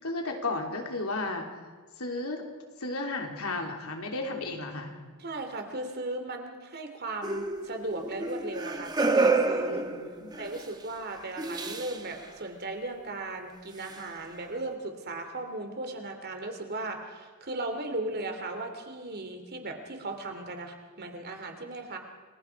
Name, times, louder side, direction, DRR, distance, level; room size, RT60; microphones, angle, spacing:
voice 1, 0.0-1.5 2.0-2.4 2.8-4.9 9.7-10.3, left 2 dB, 90° left, 2 dB, 3.4 m, -33 dB
voice 2, 5.2-9.8 10.4-22.0, right 2 dB, 50° right, 5 dB, 3.0 m, -37 dB
sound 1, 7.2-10.7 11.4-12.0 13.9-14.0, right 3 dB, 20° right, 1.4 m, -29 dB
29.5 x 22.0 x 4.8 m, 1.5 s
head